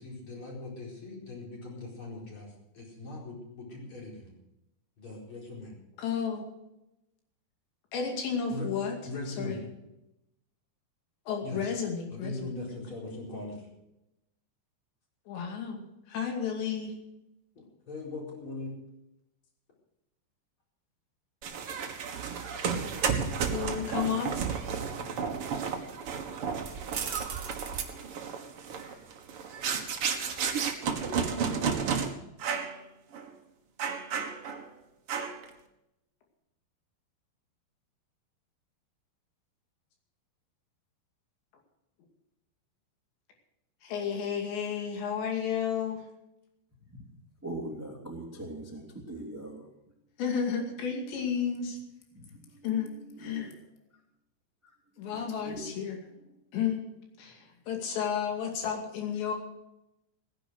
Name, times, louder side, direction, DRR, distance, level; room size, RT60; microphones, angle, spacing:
voice 1, 0.0-4.3 5.0-5.7 8.5-9.6 11.4-11.6 12.1-13.7 17.6-18.7 24.9-25.4, left 2 dB, 30° left, -2 dB, 5.1 m, -40 dB
voice 2, 6.0-6.5 7.9-9.0 9.3-9.6 11.3-12.5 15.3-16.9 21.6-21.7 23.5-24.3 43.8-46.0 50.2-51.8 52.6-52.9 53.2-53.5 55.0-56.0 56.5-56.8 57.2-59.3, left 7 dB, 85° left, 2 dB, 4.8 m, -32 dB
sound 1, 21.4-32.1 32.4-32.8 33.1-33.3 33.8-34.7 35.1-35.5, right 6 dB, 75° right, 1.2 m, -32 dB
voice 3, 47.4-49.7 52.1-52.6 53.1-53.6 54.6-54.7 55.1-55.6, right 1 dB, 5° right, 1 dB, 1.5 m, -42 dB
17.5 x 10.5 x 6.4 m, 0.89 s
omnidirectional pair, 4.9 m